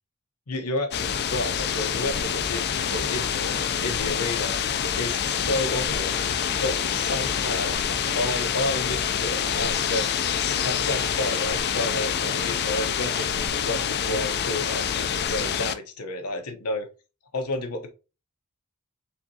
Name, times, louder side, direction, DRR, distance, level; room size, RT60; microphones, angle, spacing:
voice 1, 0.5-4.6 5.0-6.3 6.6-7.7 8.2-10.2 10.6-16.9 17.3-17.9, left 1 dB, 85° left, 1.1 m, -31 dB
sound 1, 0.9-15.7, left 8 dB, 50° left, 0.5 m, -26 dB
4.7 x 3.6 x 2.8 m
head